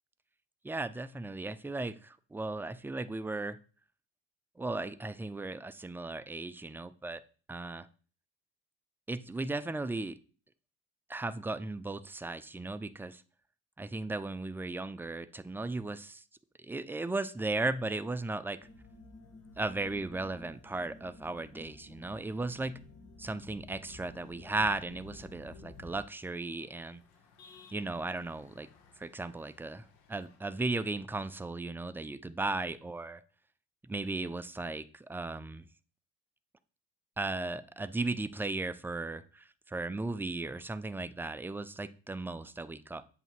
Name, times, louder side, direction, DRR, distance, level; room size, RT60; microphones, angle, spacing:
voice 1, 0.6-3.6 4.6-7.2 7.5-7.9 9.1-10.2 11.1-13.2 13.8-16.2 16.6-18.6 19.6-22.8 23.2-27.0 27.7-28.7 29.0-33.2 33.8-35.7 37.2-43.0, right 2 dB, 5° right, 12 dB, 0.4 m, -36 dB
sound 1, 18.6-26.0, left 2 dB, 45° left, 1.7 m, -52 dB
sound 2, 23.9-30.4, left 5 dB, 70° left, 1.0 m, -62 dB
7.7 x 2.9 x 4.6 m, 0.39 s
hypercardioid pair, 55°, 35 cm